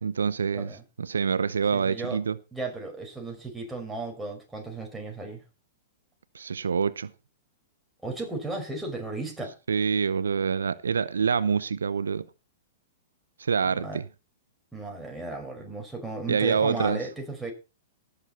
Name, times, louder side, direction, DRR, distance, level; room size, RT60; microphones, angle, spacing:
voice 1, 0.0-2.4 6.3-7.1 9.7-12.3 13.4-14.0 16.3-17.1, right 6 dB, 90° right, 0.7 m, -26 dB
voice 2, 1.7-2.2 2.5-5.4 8.0-9.5 13.6-14.0 14.7-17.5, right 3 dB, 5° right, 5.2 m, -35 dB
18.0 x 7.1 x 4.2 m
hypercardioid pair, 120°, 0 cm